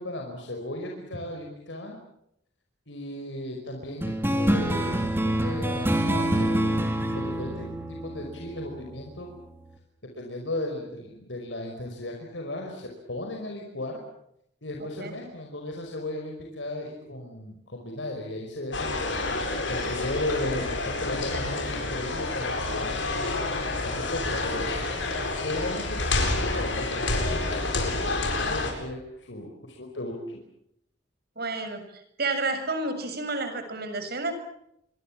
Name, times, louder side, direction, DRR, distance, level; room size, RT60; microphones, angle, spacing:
voice 1, 0.0-2.0 2.9-7.7 8.0-9.3 10.1-14.0 14.6-19.2 19.7-22.9 23.7-24.7 25.4-30.4, left 1 dB, 75° left, 2 dB, 5.3 m, -36 dB
sound 1, 4.0-8.9, right 1 dB, 10° right, 3.5 m, -26 dB
sound 2, 18.7-28.7, left 2 dB, 90° left, 8.0 m, -28 dB
voice 2, 31.4-34.3, right 3 dB, 60° right, 8 dB, 6.7 m, -30 dB
28.0 x 23.5 x 7.5 m, 0.76 s
head